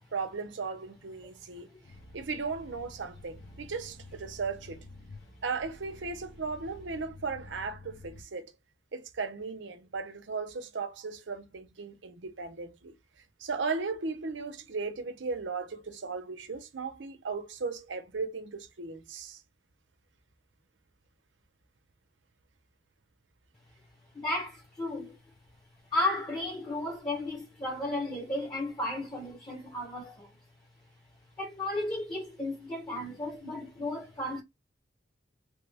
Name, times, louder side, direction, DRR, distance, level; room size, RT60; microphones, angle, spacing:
voice 1, 0.1-1.7 2.1-4.8 5.4-8.5 8.9-12.9 13.4-19.4, right 4 dB, 85° right, 0.7 m, -36 dB
sound 1, 1.8-8.2, left 1 dB, 75° left, 0.7 m, -50 dB
voice 2, 24.1-25.2 25.9-30.3 31.4-34.4, left 1 dB, 20° left, 0.8 m, -34 dB
3.2 x 2.3 x 3.3 m
head